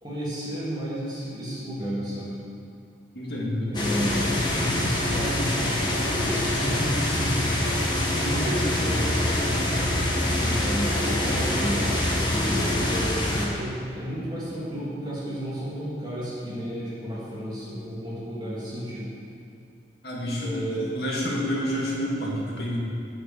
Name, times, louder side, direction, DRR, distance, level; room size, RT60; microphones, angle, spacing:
voice 1, 0.0-2.4 3.7-7.6 8.0-9.3 10.3-11.9 12.2-19.1 20.4-20.9, equal, 25° right, -9 dB, 2.8 m, -32 dB
voice 2, 3.1-3.7 20.0-22.8, equal, 65° left, -4 dB, 1.9 m, -29 dB
sound 1, 3.7-13.5, left 1 dB, 25° left, 1.2 m, -25 dB
8.8 x 6.4 x 6.9 m, 2.4 s
head